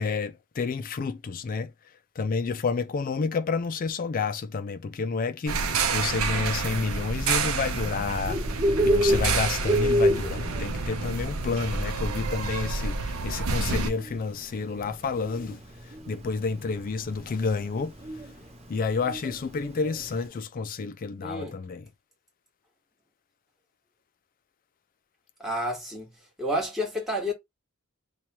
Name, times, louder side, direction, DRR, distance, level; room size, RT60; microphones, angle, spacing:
voice 1, 0.0-1.7 2.2-8.4 8.8-15.6 16.1-17.9 18.7-21.9, left 4 dB, 40° left, 0.3 m, -30 dB
sound 1, 5.5-13.9, right 4 dB, 75° right, 0.7 m, -29 dB
Bird, 8.1-20.2, equal, 30° right, 0.7 m, -30 dB
voice 2, 21.2-21.6 25.4-26.1 26.4-27.3, equal, ahead, 1.4 m, -30 dB
3.1 x 2.3 x 4.2 m
head